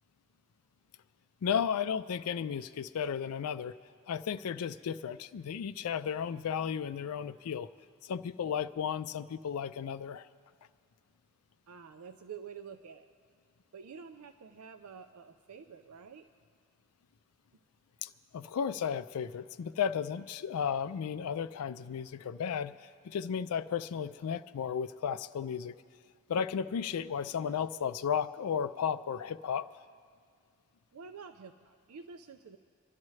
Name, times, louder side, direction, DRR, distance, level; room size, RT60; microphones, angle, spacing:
voice 1, 1.4-3.7 4.1-7.7 8.0-10.3 18.0-25.7 26.3-29.8, left 7 dB, 80° left, 12 dB, 0.4 m, -34 dB
voice 2, 11.7-13.1 13.7-16.3 30.9-32.6, right 6 dB, 85° right, 8 dB, 0.5 m, -48 dB
26.0 x 12.0 x 3.2 m, 2.2 s
head